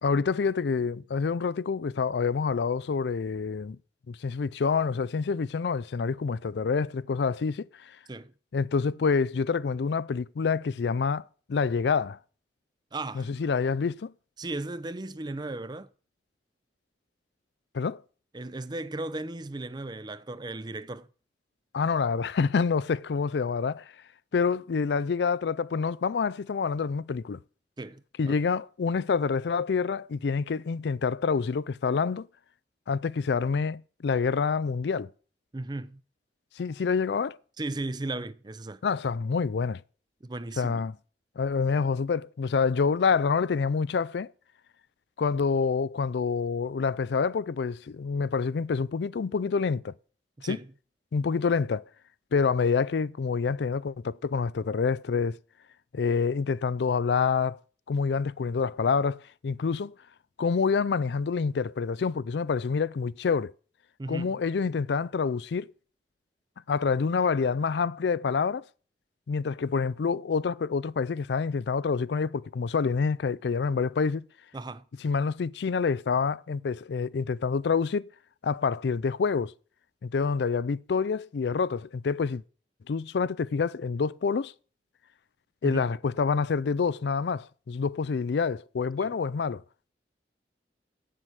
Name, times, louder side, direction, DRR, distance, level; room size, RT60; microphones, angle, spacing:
voice 1, 0.0-3.8 4.1-8.0 8.5-11.2 11.5-12.2 13.2-14.1 17.7-18.0 21.7-23.9 24.3-27.4 28.2-32.3 32.9-35.1 36.6-37.4 38.8-39.8 40.6-40.9 41.4-44.3 45.2-49.9 50.4-50.6 51.1-51.8 52.3-55.4 55.9-57.6 57.9-60.0 60.4-63.5 64.1-65.7 66.7-68.6 69.3-74.2 75.0-78.1 78.4-79.5 80.0-82.4 82.9-84.5 85.6-89.6, left 5 dB, 70° left, 0.4 m, -27 dB
voice 2, 12.9-13.3 14.4-15.9 18.3-21.1 27.8-28.3 35.5-36.0 37.6-38.8 40.2-40.8 50.4-50.7 64.0-64.4 74.5-74.8 85.6-85.9 89.0-89.1, right 2 dB, 25° right, 0.5 m, -36 dB
7.8 x 7.5 x 8.1 m
head